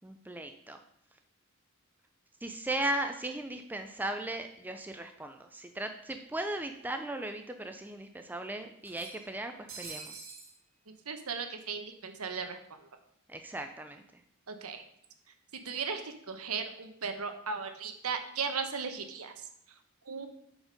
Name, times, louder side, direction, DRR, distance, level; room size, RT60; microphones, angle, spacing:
voice 1, 0.0-0.8 2.4-10.1 13.3-14.0, right 1 dB, 10° right, 6 dB, 0.4 m, -37 dB
sound 1, 5.4-5.5 5.8-5.9 7.0-7.1 7.4-7.5 8.8-10.5, right 4 dB, 60° right, 1.8 m, -46 dB
voice 2, 11.1-12.6 14.5-14.8 15.6-19.5 20.0-20.3, right 5 dB, 90° right, 7 dB, 1.0 m, -36 dB
7.4 x 5.0 x 5.2 m, 0.72 s
head